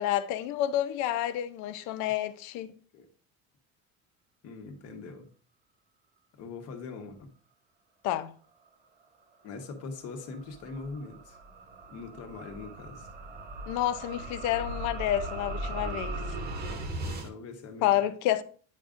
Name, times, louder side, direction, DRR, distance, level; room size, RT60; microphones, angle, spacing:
voice 1, 0.0-2.7 8.0-8.3 13.7-16.2 17.8-18.4, left 12 dB, 65° left, 0.7 m, -29 dB
voice 2, 4.4-5.3 6.4-7.3 9.4-11.4 11.9-13.1 17.0-17.9, left 4 dB, 50° left, 1.2 m, -42 dB
sound 1, 9.5-17.3, right 2 dB, 30° right, 1.0 m, -38 dB
9.5 x 5.0 x 2.6 m
cardioid pair, 170°, 31 cm